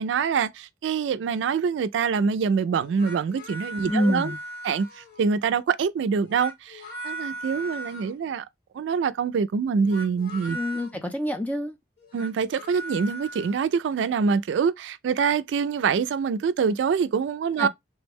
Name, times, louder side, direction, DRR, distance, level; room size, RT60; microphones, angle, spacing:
voice 1, 0.0-4.3 4.6-8.4 8.7-10.6 12.1-17.7, right 6 dB, 80° right, 0.3 m, -25 dB
sound 1, 2.8-5.3 6.1-8.2 9.8-10.9 12.0-13.7, right 1 dB, 60° left, 1.7 m, -38 dB
voice 2, 3.8-4.4 10.5-11.8 17.6-17.7, left 1 dB, 10° left, 0.5 m, -26 dB
3.3 x 2.1 x 3.4 m
head